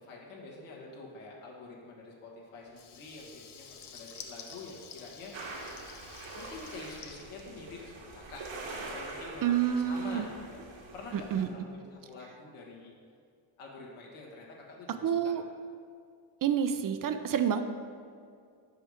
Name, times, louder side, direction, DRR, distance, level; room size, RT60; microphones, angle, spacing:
voice 1, 0.0-5.6 6.3-10.6 10.9-12.9 13.6-15.3, left 3 dB, 80° left, -3 dB, 1.7 m, -47 dB
Water tap faucet / Liquid, 2.7-8.2, left 6 dB, 55° left, 0.8 m, -50 dB
sound 1, 5.3-11.5, right 3 dB, 65° right, 1.3 m, -44 dB
voice 2, 9.4-10.2 11.3-11.5 15.0-15.4 16.4-17.6, right 9 dB, 45° right, 9 dB, 0.4 m, -28 dB
5.7 x 5.5 x 4.8 m, 2.3 s
cardioid pair, 80°, 50 cm